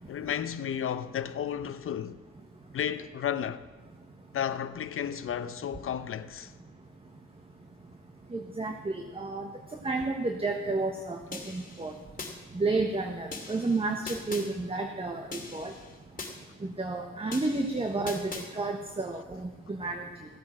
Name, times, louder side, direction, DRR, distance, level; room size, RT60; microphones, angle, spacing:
voice 1, 0.1-2.2 2.7-3.6 4.3-6.5, left 9 dB, 45° left, 0.8 m, -33 dB
voice 2, 8.3-9.5 9.8-11.2 11.5-11.9 12.5-15.7 16.8-20.0, right 3 dB, 20° right, 1.1 m, -31 dB
sound 1, 11.3-12.3 13.3-14.5 15.3-16.3 17.3-18.5, left 3 dB, 30° left, 2.8 m, -41 dB
16.0 x 8.4 x 6.2 m
cardioid pair, 90°, 30 cm